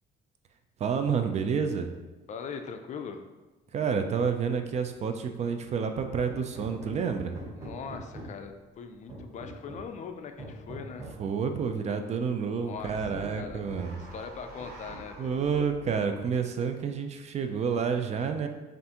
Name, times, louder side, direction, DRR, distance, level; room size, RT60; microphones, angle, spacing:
voice 1, 0.8-1.9 3.7-7.4 11.2-13.9 15.2-18.5, right 6 dB, 40° right, 7 dB, 0.4 m, -29 dB
voice 2, 2.3-3.2 7.6-11.1 12.5-15.4, left 6 dB, 45° left, 6 dB, 0.4 m, -41 dB
Hammer, 6.3-8.5 9.1-10.0 10.4-11.3 12.3-12.4 12.8-12.9 13.4-14.0 14.6-15.2 15.4-16.1, right 1 dB, 15° right, 1.2 m, -44 dB
sound 1, 12.8-17.1, right 1 dB, 65° right, 0.9 m, -47 dB
5.4 x 2.5 x 2.9 m, 1.1 s
cardioid pair, 110°, 17 cm